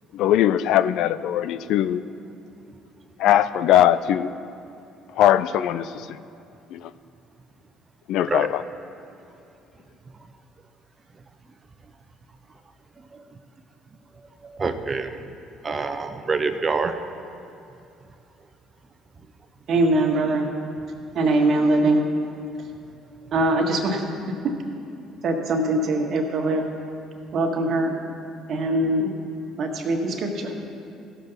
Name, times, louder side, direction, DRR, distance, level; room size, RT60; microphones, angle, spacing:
voice 1, 0.1-2.0 3.2-4.3 5.2-5.9 6.7-6.8 8.1-8.6, left 11 dB, 70° left, 14 dB, 0.3 m, -20 dB
voice 2, 14.4-15.2 15.6-17.0, right 4 dB, 35° right, 8 dB, 0.8 m, -26 dB
voice 3, 19.7-20.5 21.1-22.1 23.3-24.1 25.2-26.6 27.3-27.9 28.5-29.1 29.6-30.5, right 2 dB, 55° right, 2 dB, 1.5 m, -22 dB
16.5 x 7.0 x 4.1 m, 2.6 s
hypercardioid pair, 65°, 0 cm